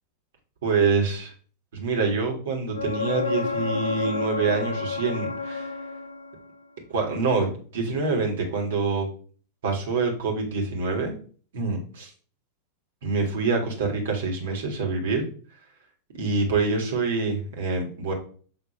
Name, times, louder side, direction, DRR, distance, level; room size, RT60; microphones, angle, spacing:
voice 1, 0.6-1.3 1.7-5.7 6.9-9.1 9.6-11.1 11.5-12.1 13.0-15.2 16.1-18.1, right 4 dB, 60° right, 0 dB, 2.2 m, -26 dB
sound 1, 2.7-6.5 10.2-10.3, left 5 dB, 85° left, 0.4 m, -30 dB
7.0 x 3.7 x 4.5 m, 0.42 s
figure-of-eight pair, 90°, 0 cm